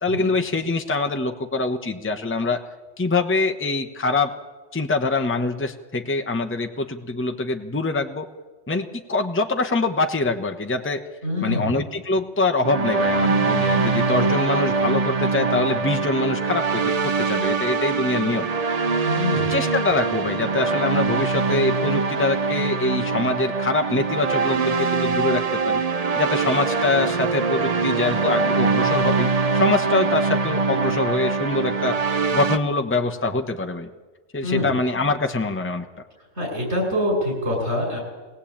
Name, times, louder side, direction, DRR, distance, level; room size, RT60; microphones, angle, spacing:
voice 1, 0.0-2.6 3.0-4.3 4.7-8.3 8.7-11.0 11.4-18.5 19.5-25.8 26.1-29.3 29.5-32.0 32.3-33.9 34.3-35.9, left 3 dB, 10° left, 5 dB, 1.0 m, -24 dB
voice 2, 11.2-11.7 19.0-19.5 34.4-34.7 36.4-38.0, left 1 dB, 70° right, -1 dB, 8.3 m, -25 dB
sound 1, 12.6-32.6, right 4 dB, 35° right, 0.9 m, -23 dB
23.0 x 17.0 x 8.8 m, 1.3 s
omnidirectional pair, 1.2 m